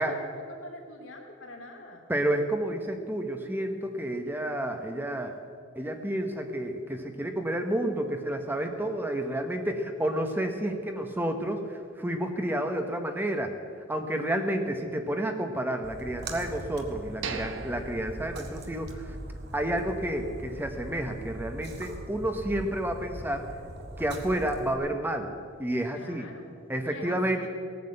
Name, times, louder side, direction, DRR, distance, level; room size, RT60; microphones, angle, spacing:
voice 1, 0.0-2.0 25.9-26.5 26.8-27.5, left 2 dB, 85° left, 1 dB, 2.8 m, -45 dB
voice 2, 2.1-5.4 5.8-13.5 13.9-19.2 19.5-23.5 24.0-25.3 25.6-26.2 26.7-27.4, right 1 dB, 10° right, 5 dB, 1.0 m, -30 dB
Splash splatter, 15.8-24.7, right 1 dB, 60° right, 1.8 m, -41 dB
sound 1, 17.2-19.2 19.5-19.6 20.1-20.3, right 5 dB, 85° right, 1.3 m, -39 dB
18.0 x 9.5 x 7.8 m, 2.2 s
head